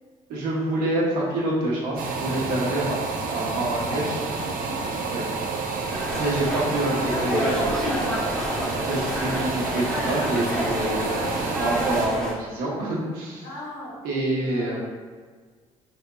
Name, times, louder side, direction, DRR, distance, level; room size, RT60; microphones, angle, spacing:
voice 1, 0.3-3.0 3.3-4.2 5.1-5.2 6.2-11.3 11.6-13.4 14.0-14.8, right 1 dB, 85° right, -5 dB, 0.9 m, -27 dB
sound 1, 2.0-12.1, right 4 dB, 70° right, 0.4 m, -29 dB
voice 2, 3.8-4.9 10.9-12.1 13.4-14.8, left 1 dB, 85° left, -6 dB, 1.0 m, -40 dB
sound 2, 5.9-12.3, equal, 5° left, 0.7 m, -29 dB
3.4 x 2.8 x 2.2 m, 1.5 s
supercardioid pair, 70°, 15 cm